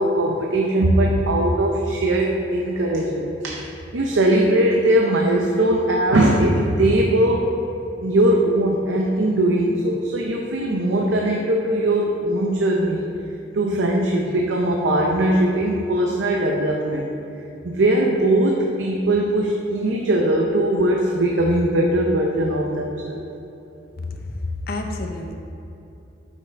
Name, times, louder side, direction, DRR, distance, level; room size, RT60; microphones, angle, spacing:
voice 1, 0.0-3.7 3.9-7.5 8.0-13.1 13.5-17.1 17.6-23.2, right 1 dB, 85° right, 0 dB, 0.6 m, -20 dB
voice 2, 24.1-25.3, left 2 dB, 55° left, 3 dB, 0.6 m, -29 dB
8.3 x 5.9 x 3.3 m, 2.8 s
head